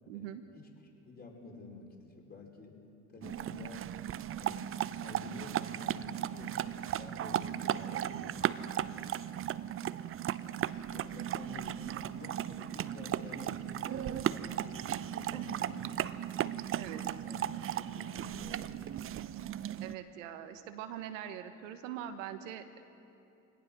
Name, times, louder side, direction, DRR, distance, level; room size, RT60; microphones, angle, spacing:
voice 1, 0.1-0.4 15.3-15.7 16.8-17.0 19.8-22.8, right 10 dB, 75° right, 8 dB, 1.5 m, -43 dB
voice 2, 1.0-2.8 3.1-3.9 4.3-9.1 9.9-16.0 17.2-19.0, left 3 dB, 25° left, 0 dB, 5.2 m, -51 dB
sound 1, 3.2-20.0, right 11 dB, 35° right, 0.7 m, -36 dB
23.0 x 18.0 x 6.3 m, 2.8 s
hypercardioid pair, 80°, 39 cm